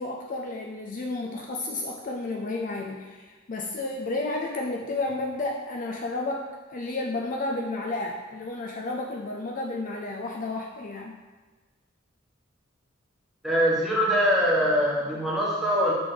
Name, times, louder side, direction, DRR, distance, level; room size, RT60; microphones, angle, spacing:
voice 1, 0.0-11.1, left 2 dB, 40° left, 1 dB, 0.4 m, -32 dB
voice 2, 13.4-15.9, equal, ahead, -6 dB, 1.2 m, -23 dB
6.0 x 3.4 x 5.1 m, 1.3 s
head